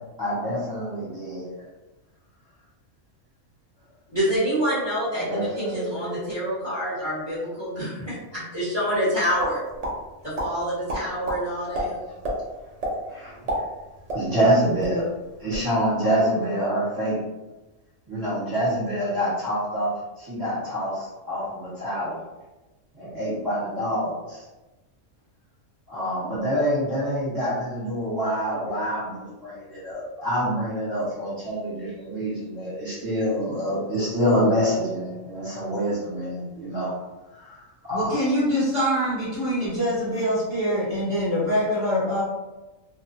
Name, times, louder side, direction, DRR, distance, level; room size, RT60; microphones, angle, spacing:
voice 1, 0.2-1.5 5.1-6.2 13.1-13.6 14.1-15.1 15.4-17.2 18.1-22.2 22.9-24.4 25.9-36.9 37.3-38.1, equal, 15° right, -10 dB, 1.2 m, -26 dB
voice 2, 4.1-9.6 10.2-12.0, equal, 20° left, -10 dB, 1.1 m, -27 dB
sound 1, 9.4-9.9 10.3-10.5 10.9-11.4 11.7-11.8 12.2-12.4 12.8-13.0 13.3-14.5 14.8-14.9 15.3-15.7, right 1 dB, 55° right, 0.4 m, -28 dB
voice 3, 37.9-42.2, equal, 45° left, -11 dB, 1.2 m, -24 dB
2.5 x 2.4 x 2.7 m, 1.1 s
omnidirectional pair, 1.4 m